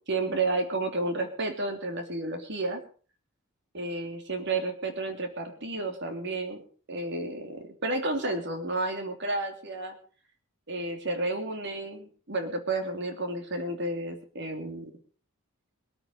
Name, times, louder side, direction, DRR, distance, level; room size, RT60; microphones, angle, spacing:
voice 1, 0.1-2.8 3.7-6.6 6.9-10.0 10.7-14.9, right 2 dB, 55° right, 6 dB, 3.1 m, -31 dB
22.0 x 8.8 x 5.4 m, 0.41 s
head